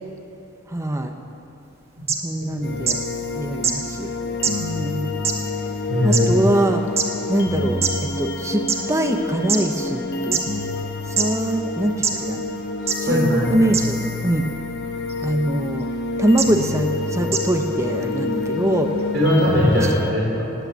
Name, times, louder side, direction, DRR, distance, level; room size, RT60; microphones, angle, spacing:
voice 1, 0.7-1.1 2.2-3.0 3.3-4.1 4.6-5.1 6.0-6.8 7.3-8.6 8.9-10.4 11.1-12.4 13.1-14.4 15.2-15.9 16.2-18.9 19.7-19.9, right 1 dB, 15° right, 5 dB, 0.9 m, -23 dB
sound 1, 2.1-2.2 2.9-3.0 3.6-3.7 4.4-4.5 5.2-5.3 6.1-6.2 7.0-7.1 7.8-7.9 8.7-8.8 9.5-9.6 10.3-10.4 11.2-11.3 12.0-12.1 12.9-13.0 13.7-13.8 15.1-15.3 16.4-16.5 17.3-17.4, right 6 dB, 35° right, 1.5 m, -21 dB
sound 2, 2.6-20.1, left 3 dB, 60° left, 1.1 m, -28 dB
voice 2, 5.9-6.4 13.0-13.5 19.1-20.5, left 1 dB, 70° right, -4 dB, 4.7 m, -20 dB
18.5 x 9.0 x 8.1 m, 2.8 s
head